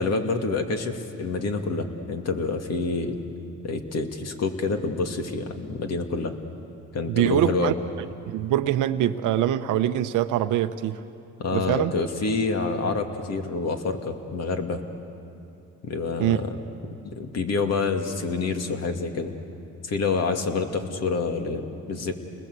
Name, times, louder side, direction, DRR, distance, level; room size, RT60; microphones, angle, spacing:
voice 1, 0.0-3.2 3.6-6.3 6.9-7.7 11.4-14.8 15.8-16.6 17.0-19.3 19.8-22.1, left 4 dB, 55° left, 5 dB, 2.4 m, -27 dB
voice 2, 7.1-7.7 8.3-11.0 11.5-11.9 16.2-16.4, right 12 dB, 85° right, 10 dB, 0.8 m, -23 dB
29.5 x 20.0 x 8.2 m, 2.7 s
cardioid pair, 90°, 30 cm